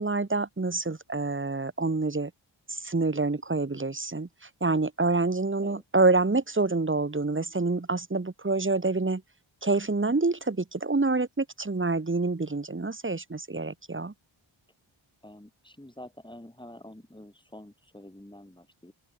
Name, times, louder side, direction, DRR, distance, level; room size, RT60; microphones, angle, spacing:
voice 1, 0.0-2.3 2.7-9.2 9.6-14.1, right 3 dB, 25° right, 1.7 m, -27 dB
voice 2, 15.2-18.9, left 1 dB, 10° left, 6.5 m, -47 dB
open air
wide cardioid pair, 95°, 49 cm